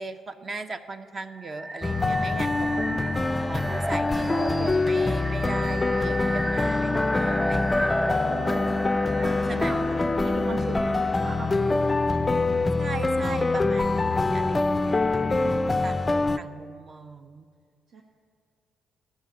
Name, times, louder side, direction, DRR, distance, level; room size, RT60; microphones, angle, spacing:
voice 1, 0.0-2.8 3.5-8.7 9.5-9.9 12.8-17.5, right 3 dB, 40° right, 8 dB, 0.6 m, -38 dB
sound 1, 1.3-12.1, equal, 10° right, 1.0 m, -33 dB
sound 2, 1.8-16.4, left 3 dB, 20° left, 0.4 m, -25 dB
voice 2, 2.0-3.0 8.2-12.4 15.4-16.1 17.9-18.0, right 4 dB, 75° right, 0 dB, 1.1 m, -41 dB
13.5 x 5.9 x 9.7 m, 2.1 s
cardioid pair, 90°, 0 cm